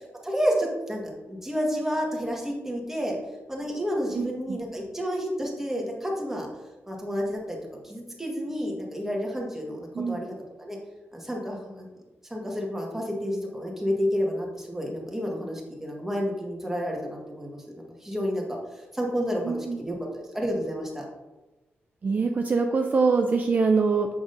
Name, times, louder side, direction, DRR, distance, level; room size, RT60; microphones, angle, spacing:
voice 1, 0.2-3.2 3.5-6.5 6.9-7.6 7.8-10.8 11.1-11.9 12.3-21.0, equal, 10° right, -1 dB, 1.4 m, -30 dB
voice 2, 4.1-4.6 10.0-10.2 19.4-19.8 22.0-24.1, right 4 dB, 40° right, 4 dB, 0.4 m, -24 dB
7.1 x 6.1 x 2.6 m, 1.1 s
wide cardioid pair, 125°, 4 cm